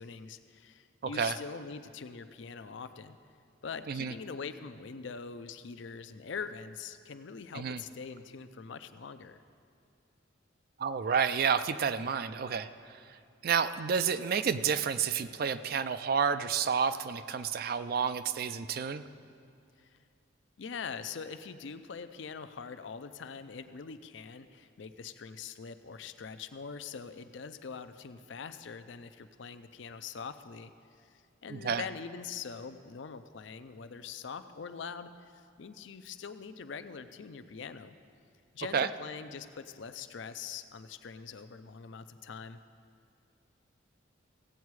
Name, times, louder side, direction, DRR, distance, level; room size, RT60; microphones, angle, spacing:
voice 1, 0.0-3.2 3.6-9.4 19.8-20.0 20.6-30.7 31.0-37.9 38.5-42.6, left 5 dB, 65° left, 11 dB, 0.5 m, -43 dB
voice 2, 10.8-12.7 13.4-19.1 31.5-31.8 38.7-38.9, right 6 dB, 50° right, 12 dB, 0.4 m, -30 dB
16.5 x 8.3 x 4.7 m, 2.4 s
head